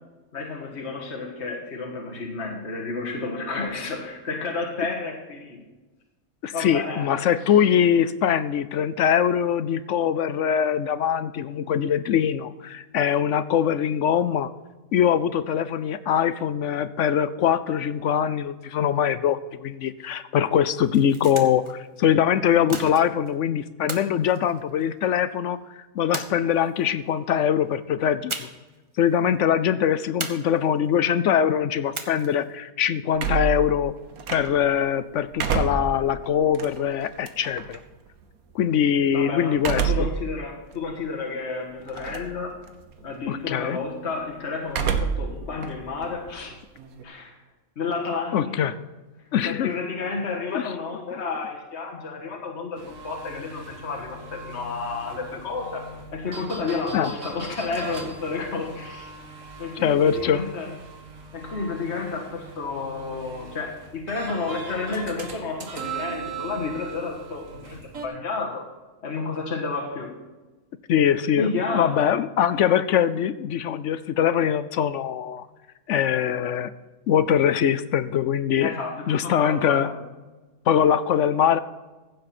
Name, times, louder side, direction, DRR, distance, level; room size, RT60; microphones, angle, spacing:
voice 1, 0.3-5.6 6.5-7.1 39.1-42.5 43.0-46.5 47.0-47.4 47.8-48.8 49.5-55.8 56.1-59.1 59.6-60.7 61.3-68.6 69.0-70.1 71.4-72.1 78.6-79.9, left 4 dB, 50° left, 0 dB, 1.8 m, -31 dB
voice 2, 6.4-14.5 14.9-28.5 29.0-33.9 34.3-37.8 38.5-40.1 43.3-43.8 48.3-48.7 49.3-49.7 50.5-50.7 56.9-57.1 59.8-60.5 70.9-75.5 75.9-76.7 77.1-78.7 79.1-79.9 80.7-81.6, left 9 dB, 65° left, 14 dB, 0.8 m, -22 dB
sound 1, 20.8-21.7 22.7-23.3 23.9-25.1 26.1-26.9 28.3-28.8 29.0-29.1 30.2-30.9 31.9-32.5, right 2 dB, 25° right, 1.0 m, -36 dB
sound 2, 33.1-34.8 35.2-37.8 39.6-40.2 40.7-40.8 41.9-42.4 42.7-43.1 44.7-45.3 45.6-47.0, right 7 dB, 90° right, 1.5 m, -28 dB
sound 3, 52.8-68.1, right 4 dB, 65° right, 1.8 m, -39 dB
15.5 x 7.6 x 4.2 m, 1.2 s
omnidirectional pair, 1.5 m